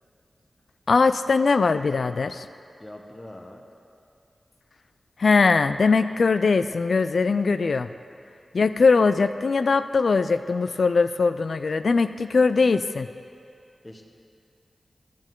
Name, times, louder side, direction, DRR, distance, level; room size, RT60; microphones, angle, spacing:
voice 1, 0.9-2.5 5.2-7.9 8.5-13.1, left 4 dB, 75° left, 11 dB, 0.3 m, -21 dB
voice 2, 2.8-3.6 13.8-14.0, left 1 dB, 30° left, 1 dB, 0.9 m, -42 dB
14.5 x 7.4 x 3.8 m, 2.5 s
wide cardioid pair, 60°, 0 cm